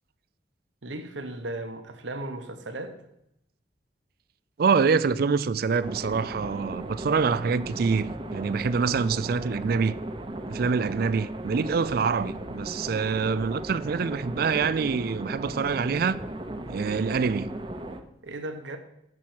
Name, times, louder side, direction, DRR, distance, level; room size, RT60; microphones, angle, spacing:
voice 1, 0.8-3.0 18.2-18.8, right 2 dB, 80° right, 1.0 m, -36 dB
voice 2, 4.6-10.0 10.5-16.2 16.7-17.5, right 5 dB, 55° right, 0.4 m, -25 dB
sound 1, 5.8-18.0, right 1 dB, 25° right, 0.8 m, -37 dB
7.2 x 6.2 x 7.7 m
head